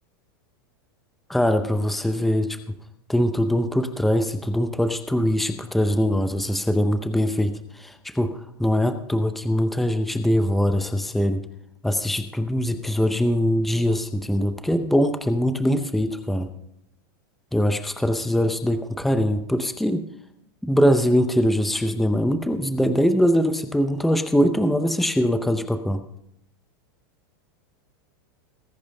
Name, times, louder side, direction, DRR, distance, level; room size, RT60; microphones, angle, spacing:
voice 1, 1.3-2.6 3.1-11.4 11.8-16.5 17.5-20.0 20.6-26.0, equal, ahead, 8 dB, 0.7 m, -22 dB
19.5 x 10.5 x 3.5 m, 0.77 s
supercardioid pair, 155°, 12 cm